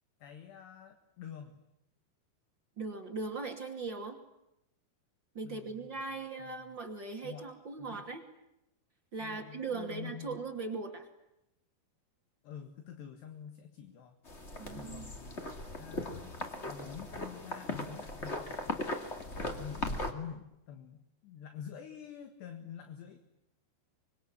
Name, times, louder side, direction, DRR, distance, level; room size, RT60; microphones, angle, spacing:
voice 1, 0.2-1.6 5.4-6.7 7.2-7.5 7.8-8.1 9.2-10.4 12.4-14.2 14.6-16.3 16.7-19.0 19.6-23.2, left 8 dB, 65° left, 7 dB, 3.5 m, -47 dB
voice 2, 2.8-4.2 5.3-8.2 9.1-11.1 14.6-15.1, right 4 dB, 35° right, 3 dB, 2.3 m, -39 dB
sound 1, 14.3-20.1, left 2 dB, 35° left, 1.1 m, -38 dB
25.5 x 24.0 x 9.7 m, 0.86 s
omnidirectional pair, 5.7 m